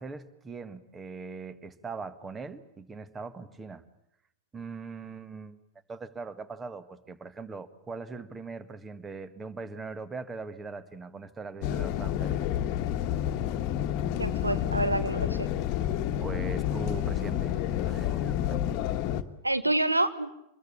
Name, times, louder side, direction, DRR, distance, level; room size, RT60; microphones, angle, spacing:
voice 1, 0.0-3.8 4.5-5.6 5.9-12.4 16.2-18.6, right 4 dB, 15° right, 13 dB, 1.8 m, -41 dB
sound 1, 11.6-19.2, left 11 dB, 40° left, 1.5 m, -29 dB
voice 2, 14.2-15.5 19.4-20.3, right 2 dB, 85° right, 11 dB, 1.4 m, -27 dB
26.5 x 22.0 x 8.6 m, 0.82 s
figure-of-eight pair, 90°, 0 cm